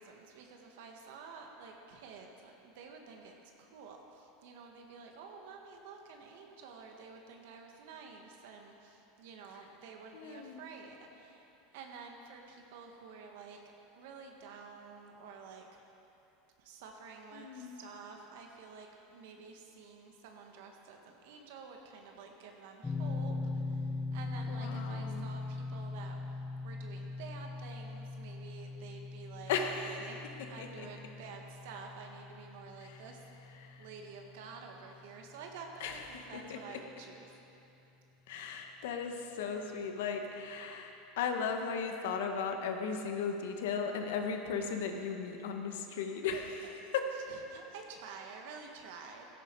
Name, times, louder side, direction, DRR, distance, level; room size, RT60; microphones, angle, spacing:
voice 1, 0.0-3.3 3.6-13.6 13.9-15.6 16.6-30.2 30.5-37.3 46.6-46.7 47.1-49.3, right 5 dB, 70° right, 2 dB, 1.7 m, -50 dB
voice 2, 10.1-10.6 17.3-17.8 24.5-25.3 29.5-30.1 30.6-30.9 32.8-33.0 33.6-33.8 35.8-36.8 38.3-47.1, left 5 dB, 80° left, 4 dB, 1.5 m, -37 dB
sound 1, 22.8-35.7, left 3 dB, 10° left, 0.6 m, -41 dB
16.0 x 13.0 x 4.8 m, 2.9 s
supercardioid pair, 145°, 0 cm